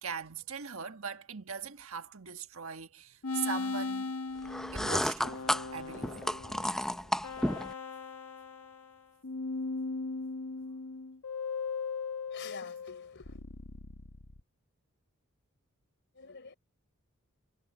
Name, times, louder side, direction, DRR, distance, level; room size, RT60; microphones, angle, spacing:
voice 1, 0.0-4.1 4.7-5.4 5.7-6.1, right 6 dB, 70° right, 1.5 m, -40 dB
sound 1, 3.2-9.0 9.2-14.4, left 4 dB, 90° left, 1.5 m, -38 dB
sound 2, 4.4-7.7, equal, ahead, 0.6 m, -32 dB
voice 2, 12.3-13.4 16.1-16.5, left 5 dB, 55° left, 3.8 m, -48 dB
head